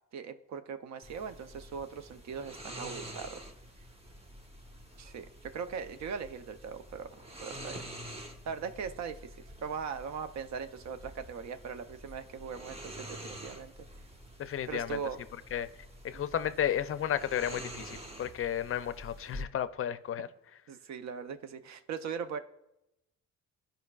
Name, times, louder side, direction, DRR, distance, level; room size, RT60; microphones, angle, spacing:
voice 1, 0.1-3.5 5.0-7.1 7.4-8.2 8.4-13.7 14.7-15.2 16.1-16.2 20.7-22.4, right 6 dB, 65° right, 0.6 m, -40 dB
sound 1, 1.0-19.4, equal, 20° right, 1.1 m, -47 dB
voice 2, 14.4-15.0 15.5-15.7 16.0-20.3, left 10 dB, 45° left, 0.4 m, -33 dB
13.0 x 5.1 x 2.3 m
cardioid pair, 90°, 30 cm